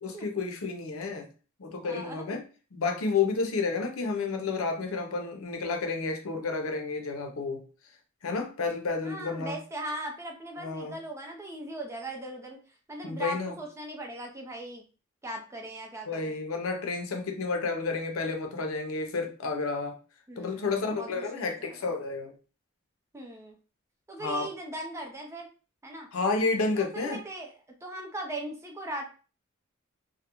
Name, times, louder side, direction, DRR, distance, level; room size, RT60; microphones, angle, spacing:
voice 1, 0.0-1.3 1.6-2.4 2.7-7.6 8.2-9.6 10.6-11.0 13.0-13.5 16.1-20.0 20.4-22.3 24.2-24.5 26.1-27.2, left 4 dB, 90° left, 4 dB, 0.6 m, -30 dB
voice 2, 1.8-2.4 9.0-12.6 12.9-14.9 15.2-16.4 20.3-21.9 23.1-23.6 24.1-25.5 25.8-26.1 26.8-27.5 27.8-29.1, right 1 dB, 15° right, 1 dB, 0.5 m, -39 dB
2.3 x 2.1 x 2.9 m, 0.36 s
head